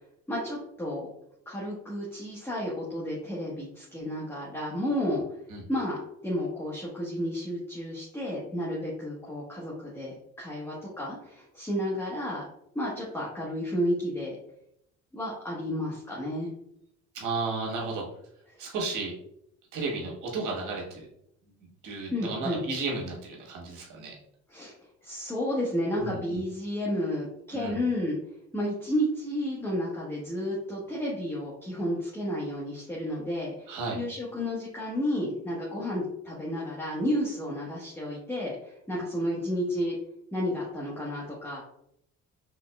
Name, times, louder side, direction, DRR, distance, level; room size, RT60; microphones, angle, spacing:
voice 1, 0.3-1.1 1.5-5.2 5.7-6.0 6.2-12.4 12.7-14.4 15.1-16.5 22.1-22.6 24.5-24.7 25.0-28.2 28.5-33.7 33.9-39.9 40.3-41.6, equal, 10° left, -6 dB, 1.1 m, -31 dB
voice 2, 17.1-18.0 18.6-19.1 19.7-21.1 21.6-24.1 26.0-26.4 27.5-27.8 33.7-34.0, right 3 dB, 90° right, -2 dB, 1.4 m, -33 dB
4.6 x 3.5 x 2.2 m, 0.74 s
cardioid pair, 90°, 30 cm